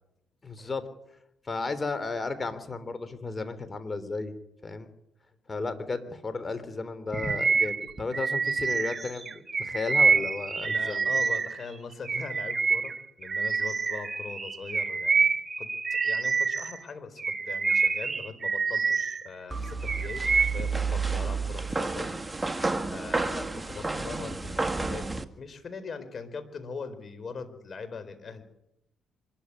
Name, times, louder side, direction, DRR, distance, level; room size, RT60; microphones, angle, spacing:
voice 1, 0.4-0.8 1.5-4.4 4.6-4.9 5.5-11.2, left 3 dB, 30° left, 12 dB, 3.5 m, -34 dB
Bird vocalization bird call bird song, 7.1-11.6 12.0-16.8 17.2-19.3 19.6-20.7, right 4 dB, 35° right, 2.0 m, -27 dB
voice 2, 10.6-15.3 15.6-22.1 22.4-25.1 25.4-28.4, left 5 dB, 50° left, 10 dB, 4.1 m, -41 dB
sound 1, 19.5-25.2, right 3 dB, 15° right, 1.7 m, -30 dB
25.0 x 13.0 x 9.8 m, 0.84 s
supercardioid pair, 65°, 0 cm